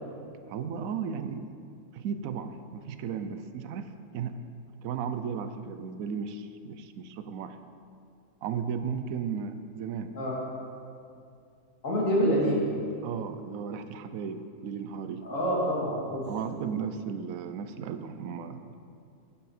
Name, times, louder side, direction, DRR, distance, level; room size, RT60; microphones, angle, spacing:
voice 1, 0.5-1.5 1.9-4.4 4.8-7.6 8.4-10.2 13.0-15.3 16.3-18.8, right 7 dB, 75° right, 10 dB, 1.0 m, -35 dB
voice 2, 11.8-12.6 15.2-16.3, equal, 60° left, -5 dB, 2.7 m, -26 dB
10.5 x 9.7 x 4.3 m, 2.4 s
omnidirectional pair, 1.5 m